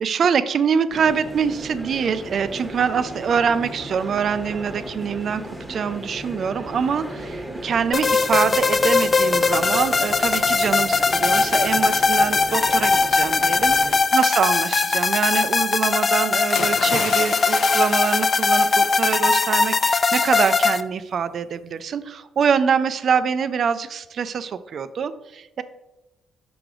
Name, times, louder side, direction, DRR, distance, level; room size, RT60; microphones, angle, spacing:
voice 1, 0.0-25.6, right 6 dB, 55° right, 13 dB, 0.4 m, -24 dB
sound 1, 0.9-14.0, equal, ahead, 1.1 m, -36 dB
sound 2, 7.9-20.8, left 4 dB, 35° left, 0.3 m, -20 dB
sound 3, 16.5-19.5 19.9-20.1, left 5 dB, 75° left, 0.7 m, -32 dB
5.9 x 4.9 x 3.7 m, 0.99 s
cardioid pair, 90°, 0 cm